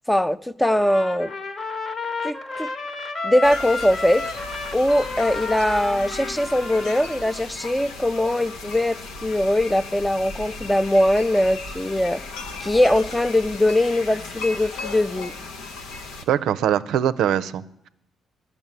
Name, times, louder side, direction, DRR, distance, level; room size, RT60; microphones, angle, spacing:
voice 1, 0.1-1.3 2.2-2.7 3.2-4.3 4.7-12.2 12.6-15.3, left 1 dB, 10° left, 0.4 m, -21 dB
Trumpet, 0.8-7.4, left 3 dB, 45° left, 1.3 m, -32 dB
sound 1, 3.4-16.2, left 3 dB, 85° left, 1.0 m, -36 dB
voice 2, 16.3-17.9, right 10 dB, 75° right, 0.4 m, -22 dB
10.5 x 6.2 x 8.8 m
supercardioid pair, 65°, 0 cm